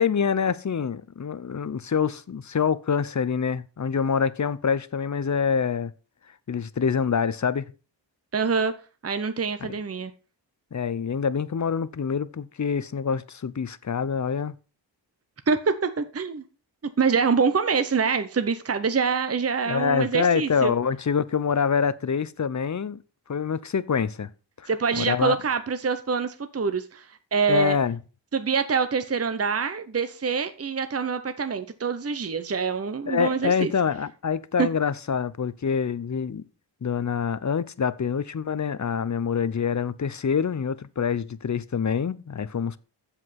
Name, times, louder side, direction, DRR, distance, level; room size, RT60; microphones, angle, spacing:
voice 1, 0.0-5.9 6.5-7.7 9.6-9.7 10.7-14.6 19.6-23.0 23.3-24.3 24.6-25.4 27.5-28.0 33.1-36.4 36.8-42.8, left 6 dB, 40° left, 0.7 m, -26 dB
voice 2, 8.3-8.7 9.0-10.1 15.5-16.4 17.0-20.7 24.7-27.8 28.3-33.7 34.6-34.7, right 5 dB, 35° right, 0.8 m, -25 dB
8.0 x 7.6 x 5.9 m
wide cardioid pair, 105°, 44 cm